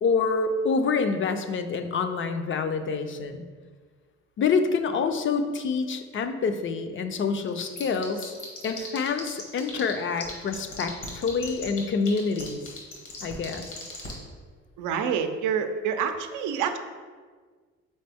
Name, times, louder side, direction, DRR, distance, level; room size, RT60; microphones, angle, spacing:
voice 1, 0.0-3.4 4.4-8.3 8.6-12.6 13.2-13.8, left 5 dB, 45° left, 8 dB, 0.4 m, -27 dB
sound 1, 7.4-9.9 10.2-14.1, left 5 dB, 80° left, 1.4 m, -37 dB
voice 2, 14.8-16.8, right 7 dB, 90° right, 7 dB, 0.5 m, -27 dB
4.2 x 3.7 x 3.4 m, 1.5 s
cardioid pair, 90°, 30 cm